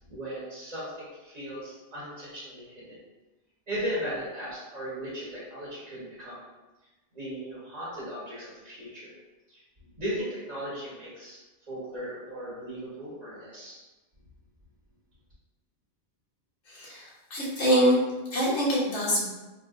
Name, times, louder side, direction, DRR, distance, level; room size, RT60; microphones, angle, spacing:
voice 1, 0.1-3.0 3.7-6.4 7.1-9.1 9.5-9.6 9.9-13.8, equal, 35° right, -10 dB, 1.1 m, -37 dB
voice 2, 16.7-18.0 18.3-19.3, equal, 65° left, -6 dB, 1.2 m, -25 dB
3.9 x 2.4 x 2.3 m, 1.1 s
omnidirectional pair, 1.3 m